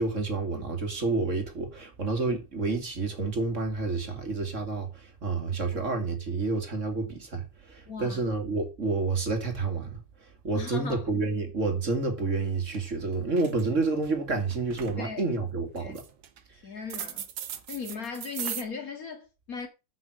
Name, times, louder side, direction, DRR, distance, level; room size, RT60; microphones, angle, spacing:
voice 1, 0.0-16.0, right 3 dB, 25° right, 2.1 m, -29 dB
voice 2, 7.9-8.2 10.5-11.0 15.0-15.2 15.8-16.0 16.6-17.3 17.7-19.7, left 5 dB, 35° left, 1.9 m, -37 dB
sound 1, 12.3-12.4 12.7-13.0 13.3-14.1 14.5-15.0 15.8-16.4 16.9-18.6, right 9 dB, 60° right, 1.8 m, -37 dB
9.5 x 5.8 x 6.4 m
omnidirectional pair, 3.6 m